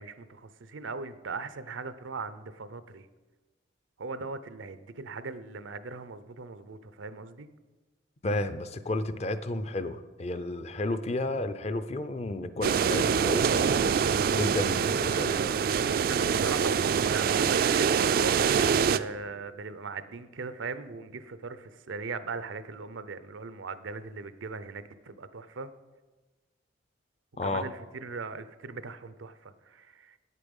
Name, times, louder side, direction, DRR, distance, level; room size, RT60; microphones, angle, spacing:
voice 1, 0.0-3.1 4.0-7.5 16.1-18.6 18.9-25.7 27.4-30.2, right 4 dB, 90° right, 13 dB, 0.6 m, -39 dB
voice 2, 8.2-13.8 14.3-15.7 27.4-27.7, left 2 dB, 35° left, 11 dB, 0.5 m, -32 dB
sound 1, 12.6-19.0, right 6 dB, 50° right, 0.3 m, -25 dB
9.4 x 8.4 x 5.4 m, 1.2 s
head